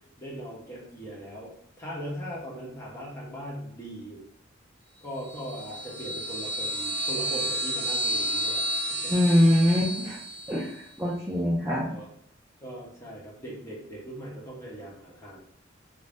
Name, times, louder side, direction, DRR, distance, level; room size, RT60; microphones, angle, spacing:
voice 1, 0.2-1.5 1.8-4.2 5.0-9.1 11.2-11.3 11.9-12.1 12.6-15.5, equal, 15° left, -5 dB, 0.8 m, -39 dB
sound 1, 5.3-10.7, right 1 dB, 60° right, 0.6 m, -31 dB
voice 2, 9.1-10.2 10.5-11.9, left 1 dB, 10° right, -6 dB, 0.4 m, -23 dB
2.5 x 2.0 x 3.3 m, 0.71 s
head